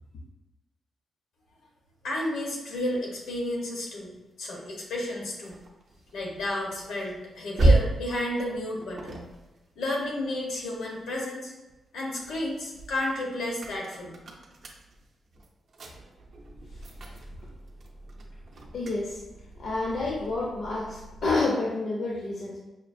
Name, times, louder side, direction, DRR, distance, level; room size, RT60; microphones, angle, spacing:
voice 1, 2.0-4.1 4.4-5.6 6.1-9.3 9.8-11.5 11.9-14.1, left 1 dB, 85° left, -2 dB, 1.0 m, -32 dB
sound 1, 4.7-11.2 11.7-21.5, right 2 dB, 45° right, 0.5 m, -33 dB
voice 2, 18.7-19.2 19.6-22.6, left 3 dB, 60° left, -3 dB, 0.6 m, -29 dB
5.6 x 2.4 x 2.6 m, 1.0 s
wide cardioid pair, 170°, 0 cm